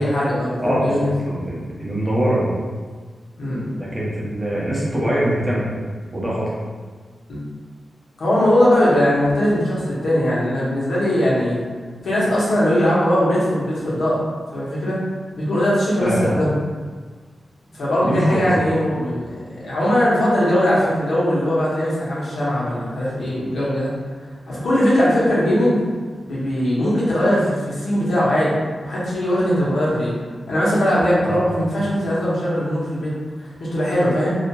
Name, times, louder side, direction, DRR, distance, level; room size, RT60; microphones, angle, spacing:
voice 1, 0.0-1.6 3.4-3.7 7.3-7.4 8.2-11.6 12.0-14.3 14.5-15.0 15.4-16.5 17.7-19.3 19.6-23.9 24.5-25.8 26.3-28.5 28.8-30.1 30.5-33.1 33.4-34.3, equal, 90° left, -7 dB, 0.8 m, -20 dB
voice 2, 0.6-2.5 3.7-5.8 6.1-6.5 16.0-16.4 18.0-18.5 31.2-31.4, equal, 20° right, -6 dB, 0.6 m, -23 dB
2.8 x 2.4 x 2.2 m, 1.5 s
wide cardioid pair, 155°, 0 cm